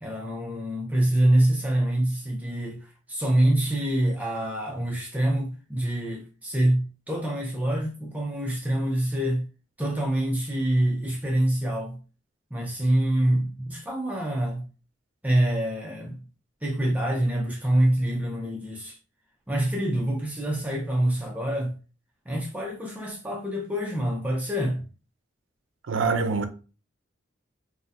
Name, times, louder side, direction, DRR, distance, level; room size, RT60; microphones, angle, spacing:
voice 1, 0.0-9.5 9.8-12.0 12.5-14.6 15.2-16.2 16.6-19.0 19.5-21.8 22.3-24.8, right 1 dB, 10° right, 0.4 m, -25 dB
voice 2, 25.9-26.5, right 4 dB, 75° right, 0.5 m, -24 dB
3.4 x 2.0 x 2.6 m
head